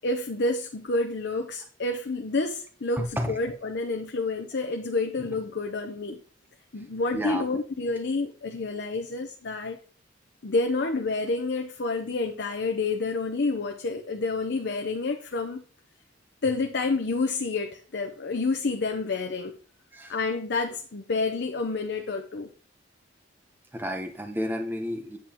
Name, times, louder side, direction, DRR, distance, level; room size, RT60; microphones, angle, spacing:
voice 1, 0.0-6.2 6.7-9.8 10.4-15.6 16.4-19.6 20.1-22.5, left 3 dB, 60° left, 0.7 m, -29 dB
voice 2, 3.0-3.4 7.1-7.4 19.9-20.1 23.7-25.2, equal, 10° right, 0.8 m, -31 dB
8.6 x 7.5 x 2.9 m
head